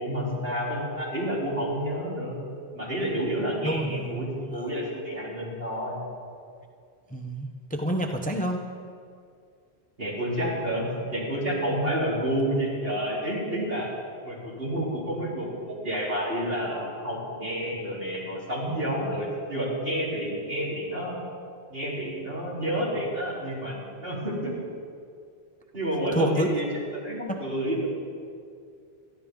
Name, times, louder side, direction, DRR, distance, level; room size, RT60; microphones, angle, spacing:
voice 1, 0.0-2.4 2.7-6.0 10.0-13.9 14.2-21.2 21.7-24.5 25.7-27.9, equal, 60° right, -6 dB, 4.1 m, -29 dB
voice 2, 3.6-4.3 4.5-4.7 7.1-8.6 26.1-26.5 27.3-27.4, right 1 dB, 10° left, 3 dB, 0.8 m, -28 dB
22.0 x 14.0 x 3.8 m, 2.3 s
omnidirectional pair, 1.1 m